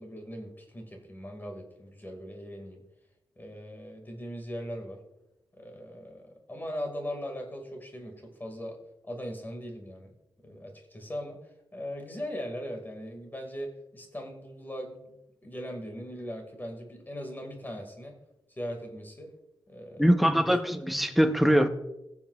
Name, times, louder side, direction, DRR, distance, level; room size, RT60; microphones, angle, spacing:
voice 1, 0.0-2.8 3.4-5.0 5.5-8.8 9.0-10.1 10.4-18.2 18.5-19.3 19.7-20.6, equal, 20° left, 2.0 m, -40 dB
voice 2, 20.0-21.7, equal, ahead, 0.7 m, -22 dB
18.5 x 7.1 x 2.4 m
wide cardioid pair, 110°, 9 cm